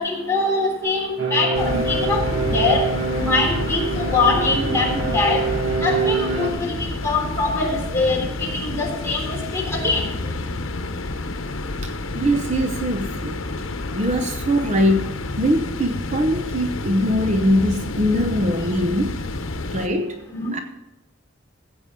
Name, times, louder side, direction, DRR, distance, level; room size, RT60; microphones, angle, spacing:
voice 1, 0.0-2.9 3.2-5.4 5.7-10.0 20.3-20.6, left 3 dB, 15° left, -2 dB, 3.2 m, -23 dB
sound 1, 1.2-6.5, right 4 dB, 65° right, 1.5 m, -25 dB
sound 2, 1.5-19.9, left 2 dB, 85° left, 1.0 m, -29 dB
voice 2, 11.8-13.4 13.8-19.3 19.7-20.2 20.5-20.6, equal, 35° right, 6 dB, 0.8 m, -22 dB
14.5 x 8.1 x 3.8 m, 1.0 s
head